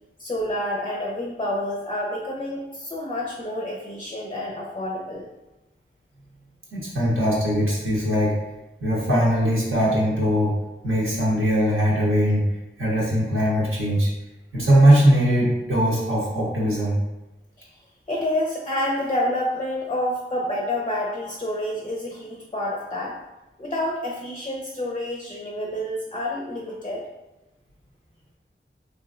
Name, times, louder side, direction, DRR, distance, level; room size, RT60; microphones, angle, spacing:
voice 1, 0.2-5.3 18.1-23.2 23.6-27.0, left 1 dB, 25° left, -2 dB, 0.4 m, -28 dB
voice 2, 6.7-8.3 8.8-10.5 10.8-12.5 12.8-14.1 14.5-17.0, equal, 75° right, -6 dB, 0.8 m, -20 dB
3.0 x 2.5 x 2.3 m, 1.0 s
wide cardioid pair, 45°, 21 cm